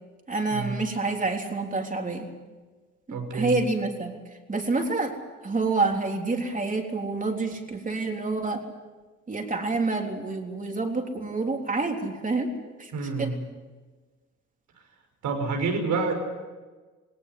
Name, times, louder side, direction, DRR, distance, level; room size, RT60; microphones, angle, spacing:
voice 1, 0.3-2.3 3.1-4.1 4.5-5.2 5.4-8.6 9.3-12.5 12.8-13.3, right 3 dB, 25° right, 3 dB, 3.7 m, -28 dB
voice 2, 3.1-3.5 12.9-13.3 15.2-16.1, right 4 dB, 80° right, 4 dB, 5.7 m, -28 dB
19.0 x 18.5 x 9.6 m, 1.3 s
cardioid pair, 90°, 30 cm